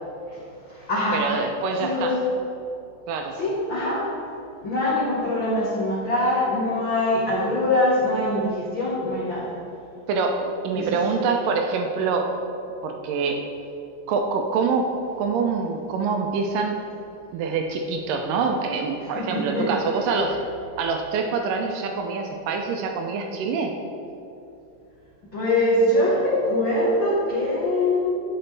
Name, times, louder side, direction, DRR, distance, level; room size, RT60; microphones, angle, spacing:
voice 1, 0.3-1.3 1.8-2.2 3.3-4.1 4.6-9.5 10.7-11.0 19.1-19.7 25.3-28.1, left 1 dB, 75° left, -7 dB, 1.1 m, -23 dB
voice 2, 1.1-2.2 3.1-3.4 10.1-12.3 12.8-13.5 14.1-14.9 15.2-16.8 17.3-20.4 20.8-23.7, right 4 dB, 80° right, 3 dB, 2.1 m, -25 dB
10.0 x 6.8 x 3.3 m, 2.7 s
omnidirectional pair, 4.1 m